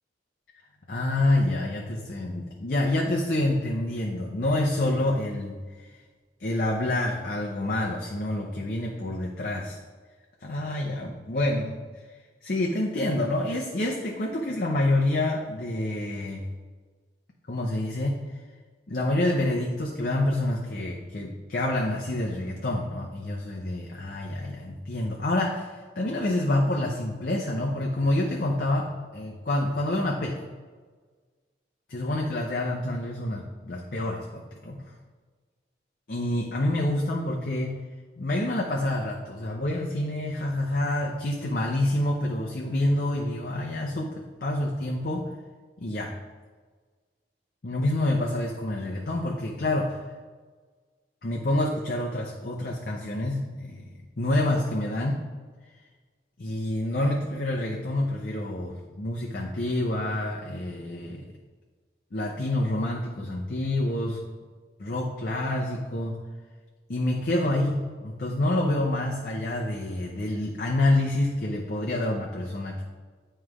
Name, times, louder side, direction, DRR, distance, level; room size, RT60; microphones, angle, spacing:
voice 1, 0.9-5.6 5.9-6.0 6.4-9.8 10.4-11.8 12.4-16.4 17.5-18.2 18.9-30.4 31.9-34.8 36.1-37.8 38.2-45.3 45.8-46.1 47.6-50.0 51.2-53.8 54.2-55.2 56.4-61.2 62.1-64.2 64.8-66.2 66.9-72.8, left 1 dB, 50° left, -1 dB, 0.7 m, -27 dB
9.4 x 3.3 x 4.8 m, 1.5 s
head